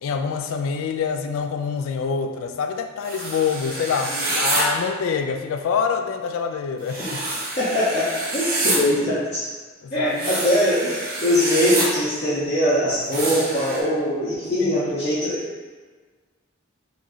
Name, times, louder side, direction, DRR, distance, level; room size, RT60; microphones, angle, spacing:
voice 1, 0.0-7.0 9.8-10.4 14.6-14.9, left 6 dB, 80° left, 7 dB, 0.3 m, -26 dB
sound 1, 3.0-4.6 6.9-8.8 10.1-11.9 13.1-13.8, right 2 dB, 45° right, 0.6 m, -27 dB
voice 2, 7.6-9.5 9.9-15.5, equal, 35° left, -11 dB, 0.7 m, -22 dB
3.0 x 2.6 x 3.6 m, 1.4 s
head